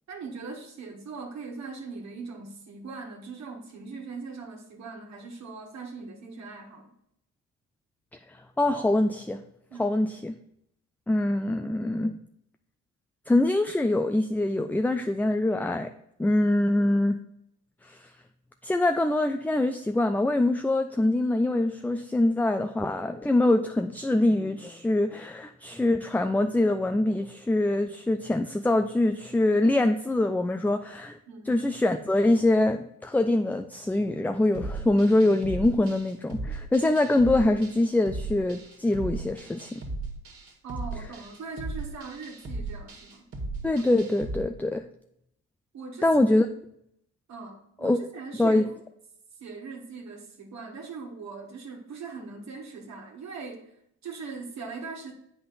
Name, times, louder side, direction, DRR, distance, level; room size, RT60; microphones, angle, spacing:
voice 1, 0.1-6.9 9.7-9.9 31.3-31.5 40.6-43.2 45.7-46.1 47.3-48.6 49.4-53.7 54.0-55.1, right 4 dB, 65° right, 1 dB, 1.6 m, -40 dB
voice 2, 8.3-9.4 9.8-10.4 11.1-12.2 13.3-15.9 16.2-17.2 17.8-18.1 18.6-31.2 31.5-39.8 43.6-44.8 46.0-46.5 47.8-48.0 48.4-48.7, left 2 dB, 5° left, 7 dB, 0.3 m, -24 dB
sound 1, 34.5-44.4, right 2 dB, 50° right, 1.8 m, -37 dB
7.8 x 5.7 x 4.1 m, 0.74 s
cardioid pair, 90°, 30 cm